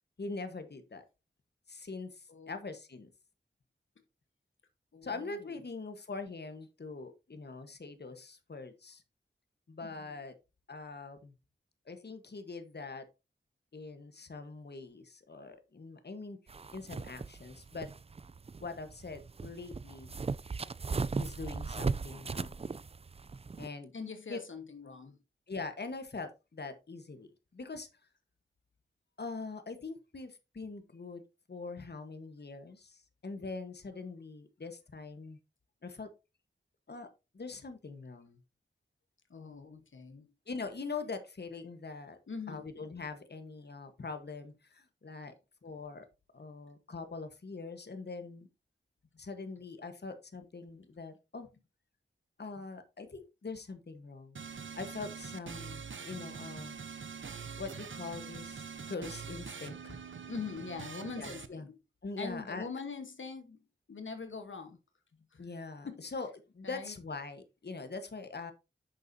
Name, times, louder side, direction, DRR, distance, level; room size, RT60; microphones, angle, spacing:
voice 1, 0.2-1.0 1.7-3.1 5.0-9.0 9.7-10.3 10.7-11.3 11.9-13.1 13.7-16.4 16.7-17.9 18.6-20.1 21.2-22.6 23.6-23.9 24.3-24.4 25.5-27.9 29.2-31.2 31.5-35.4 35.8-36.1 36.9-37.1 37.3-38.4 40.5-42.2 42.5-45.3 45.6-46.1 46.3-48.5 49.2-51.5 52.4-54.4 54.7-56.8 57.6-60.0 61.2-61.7 62.0-62.7 65.4-68.5, left 4 dB, 60° left, 1.3 m, -43 dB
voice 2, 4.9-5.6 9.8-10.2 23.9-25.2 39.3-40.3 42.3-42.6 60.3-61.8 62.2-63.6 63.9-64.8 65.3-65.5 65.8-66.0 66.6-66.9, left 4 dB, 85° left, 1.2 m, -43 dB
sound 1, 16.5-23.7, right 4 dB, 30° right, 0.4 m, -38 dB
sound 2, 54.4-61.5, right 6 dB, 80° right, 0.8 m, -44 dB
9.7 x 6.8 x 2.7 m
wide cardioid pair, 60°, 20 cm